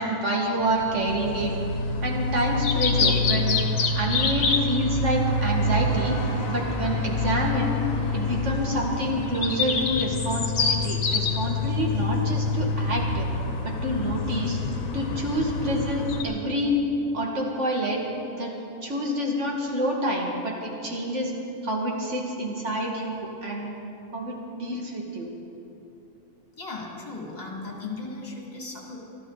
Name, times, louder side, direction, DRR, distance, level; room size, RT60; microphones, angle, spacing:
voice 1, 0.0-1.5 2.0-6.2 6.5-7.8 8.1-13.3 13.6-14.6 14.9-16.8 17.1-18.1 18.4-18.5 18.8-21.3 21.6-23.8 24.1-25.3, equal, 55° right, -1 dB, 2.4 m, -27 dB
sound 1, 0.6-16.2, left 3 dB, 75° left, 1.5 m, -26 dB
sound 2, 4.5-11.2, equal, 75° right, 4.0 m, -44 dB
voice 2, 26.6-29.0, left 3 dB, 30° left, -2 dB, 2.6 m, -36 dB
23.5 x 12.5 x 4.0 m, 2.8 s
omnidirectional pair, 1.4 m